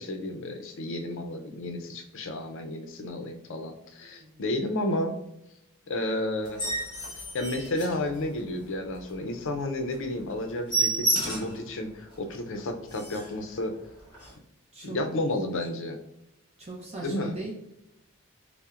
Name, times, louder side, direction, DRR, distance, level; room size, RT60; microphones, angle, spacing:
voice 1, 0.0-5.2 5.9-6.6 7.3-13.7 14.8-16.0 17.0-17.4, left 1 dB, 60° left, 5 dB, 0.5 m, -32 dB
voice 2, 4.0-4.3 14.7-15.0 16.6-17.5, right 2 dB, 30° right, -3 dB, 0.6 m, -39 dB
sound 1, 6.4-8.6 9.0-9.1 9.5-9.6 9.9-10.0 10.3-11.6 12.1-12.2 12.6-12.7 12.9-13.4 14.1-14.3, right 2 dB, 20° left, 1.2 m, -30 dB
5.5 x 2.1 x 2.4 m, 0.82 s
head